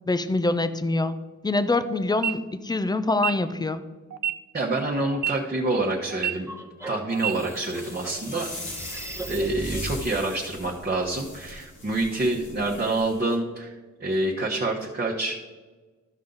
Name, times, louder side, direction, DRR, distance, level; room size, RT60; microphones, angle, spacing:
voice 1, 0.1-1.1 1.4-3.8, left 2 dB, 15° left, 12 dB, 0.5 m, -25 dB
sound 1, 2.1-2.3 3.1-3.3 4.1-4.3 5.1-5.3 6.1-6.3 7.1-7.3, right 10 dB, 75° right, 0.5 m, -26 dB
voice 2, 4.5-6.5 6.9-8.5 8.9-9.0 9.3-15.4, right 2 dB, 35° right, -3 dB, 1.2 m, -27 dB
sound 2, 6.3-10.1, right 2 dB, 10° right, 1.0 m, -36 dB
sound 3, 7.7-13.4, left 2 dB, 90° left, 1.8 m, -42 dB
13.0 x 5.4 x 3.9 m, 1.3 s
wide cardioid pair, 75°, 30 cm